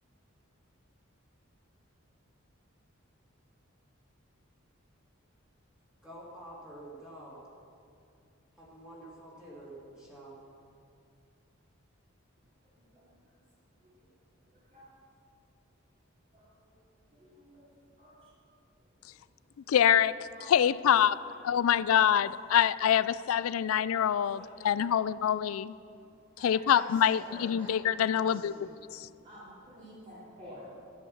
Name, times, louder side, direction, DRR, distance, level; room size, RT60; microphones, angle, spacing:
voice 1, 6.0-7.4 8.6-10.4, right 1 dB, 5° right, 2.6 m, -48 dB
voice 2, 14.5-14.8 16.3-16.5 17.1-17.7 18.0-18.1 20.3-20.5 21.5-21.6 22.9-23.1 24.3-25.0 26.4-27.7 28.1-28.7 29.2-30.7, equal, 30° right, 3.8 m, -49 dB
voice 3, 19.7-20.2 20.5-21.2 21.4-25.7 26.4-28.5 28.9-29.1, left 9 dB, 85° left, 0.4 m, -25 dB
13.5 x 10.0 x 6.4 m
head